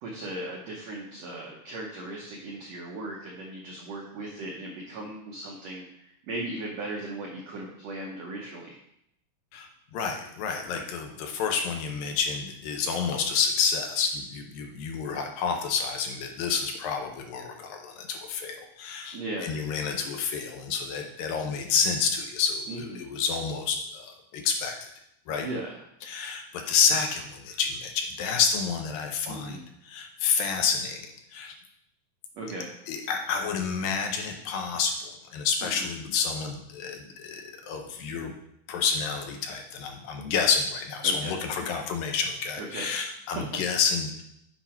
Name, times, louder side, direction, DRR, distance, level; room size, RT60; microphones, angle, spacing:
voice 1, 0.0-8.8 19.1-19.5 22.7-23.0 25.4-26.1 29.3-29.6 32.3-32.7 35.6-35.9 41.0-41.3 42.6-42.9, right 2 dB, 85° right, -1 dB, 1.4 m, -37 dB
voice 2, 9.5-24.7 25.3-25.5 26.0-29.6 29.8-31.6 32.9-38.3 38.7-44.2, left 6 dB, 75° left, 3 dB, 2.4 m, -29 dB
8.2 x 5.7 x 4.4 m, 0.76 s
omnidirectional pair, 4.4 m